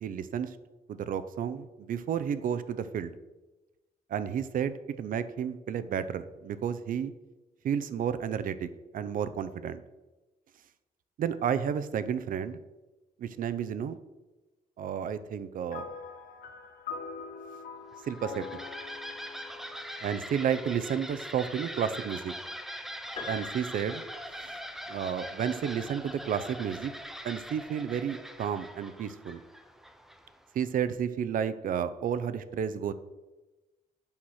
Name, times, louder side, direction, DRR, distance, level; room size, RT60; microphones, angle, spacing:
voice 1, 0.0-0.6 0.9-3.2 4.1-7.1 7.6-8.7 8.9-9.8 11.2-12.6 13.2-14.0 14.8-15.8 18.1-18.6 20.0-22.3 23.3-24.0 24.9-26.9 27.2-29.4 30.5-32.9, right 8 dB, 60° right, 13 dB, 0.6 m, -31 dB
sound 1, 15.7-21.2, left 5 dB, 70° left, 1.2 m, -44 dB
sound 2, 17.9-30.5, equal, ahead, 0.5 m, -42 dB
Piano, 23.2-25.2 26.4-26.5, left 3 dB, 40° left, 2.0 m, -44 dB
8.8 x 5.8 x 6.4 m, 1.1 s
wide cardioid pair, 165°, 16 cm